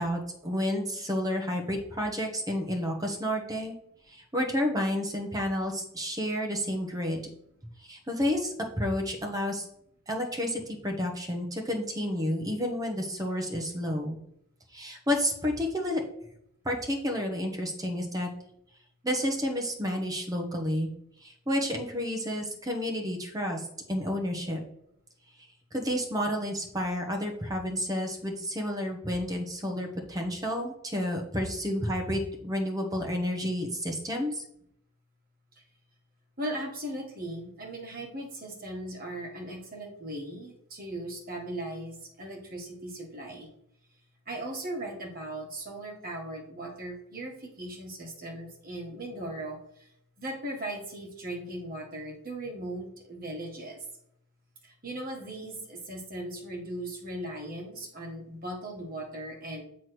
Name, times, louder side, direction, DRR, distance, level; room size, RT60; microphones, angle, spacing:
voice 1, 0.0-3.7 4.1-7.2 7.8-9.7 10.1-14.2 14.7-16.0 16.6-18.3 19.0-20.9 21.2-24.6 25.7-34.4, equal, 15° right, 2 dB, 1.0 m, -30 dB
voice 2, 36.4-43.5 44.3-49.9 50.2-53.9 54.6-59.6, right 1 dB, 40° right, 1 dB, 1.6 m, -38 dB
7.4 x 3.2 x 6.1 m, 0.74 s
head